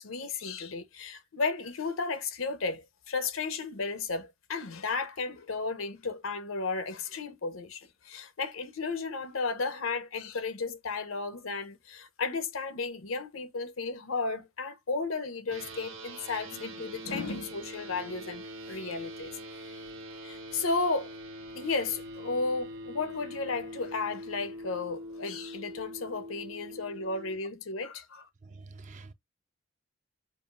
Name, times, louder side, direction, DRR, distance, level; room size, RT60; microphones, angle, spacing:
voice 1, 0.0-19.8 20.2-21.1 21.5-28.3, left 4 dB, 90° left, 0.9 m, -34 dB
sound 1, 15.5-27.4, equal, 80° right, 1.1 m, -43 dB
voice 2, 28.4-29.1, right 3 dB, 35° right, 0.3 m, -47 dB
5.2 x 2.4 x 2.5 m
head